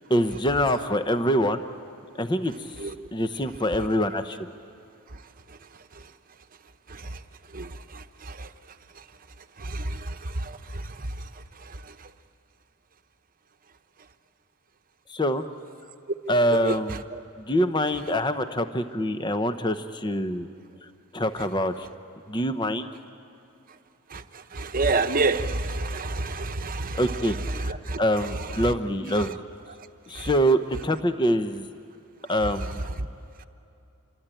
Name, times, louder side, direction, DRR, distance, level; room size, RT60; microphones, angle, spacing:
voice 1, 0.1-1.6 2.1-2.7 3.1-4.4 15.1-15.4 16.3-17.0 17.4-20.5 21.1-21.9 22.3-22.9 26.9-29.4 30.1-31.7 32.3-32.8, equal, 20° left, 0.8 m, -25 dB
voice 2, 24.5-27.0 27.9-28.0 30.2-30.3, right 3 dB, 40° right, 1.0 m, -27 dB
27.5 x 23.5 x 9.0 m
head